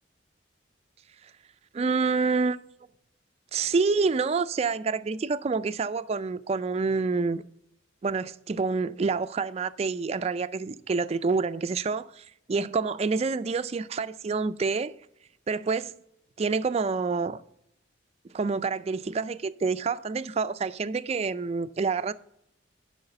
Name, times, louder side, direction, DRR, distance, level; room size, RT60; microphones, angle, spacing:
voice 1, 1.7-2.6 3.5-7.4 8.0-14.9 15.5-15.9 16.4-17.4 18.3-22.1, right 4 dB, 35° right, 0.3 m, -27 dB
10.5 x 4.9 x 6.7 m
head